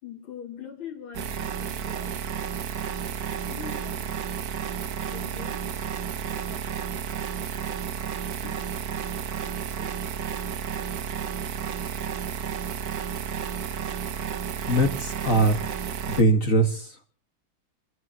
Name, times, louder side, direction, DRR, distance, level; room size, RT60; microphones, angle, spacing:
voice 1, 0.0-2.3 3.4-4.2 5.1-5.8 6.3-6.9 8.4-8.6 9.5-10.0, left 7 dB, 70° left, 3.5 m, -43 dB
sound 1, 1.1-16.2, right 7 dB, 55° right, 1.2 m, -32 dB
voice 2, 14.7-15.7 16.1-17.1, right 1 dB, 40° left, 1.7 m, -22 dB
28.5 x 14.5 x 2.9 m
omnidirectional pair, 2.3 m